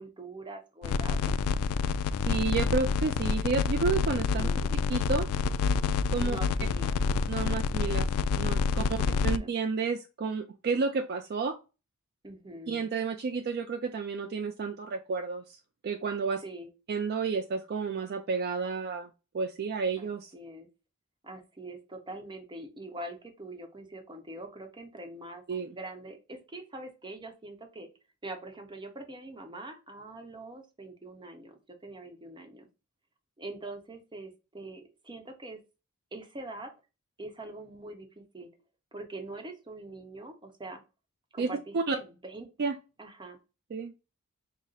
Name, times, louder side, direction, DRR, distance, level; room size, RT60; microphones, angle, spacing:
voice 1, 0.0-1.3 4.1-4.8 6.2-7.0 7.4-7.5 8.8-9.5 12.2-12.8 16.4-16.7 20.0-20.1 20.3-20.7 21.2-27.9 28.2-32.7 33.4-35.6 36.1-36.7 37.2-38.5 38.9-40.8 41.3-42.5 43.0-43.4, right 2 dB, 20° right, 5 dB, 0.8 m, -43 dB
sound 1, 0.8-9.4, left 5 dB, 75° left, 0.3 m, -28 dB
voice 2, 2.2-4.5 4.9-5.3 6.1-6.4 7.3-8.1 8.4-11.6 12.7-16.4 16.9-19.1 19.3-20.3 25.5-25.7 41.4-41.5 41.7-42.0 42.6-42.7 43.7-43.9, right 4 dB, 45° right, 7 dB, 0.4 m, -31 dB
5.5 x 2.1 x 3.8 m, 0.30 s
head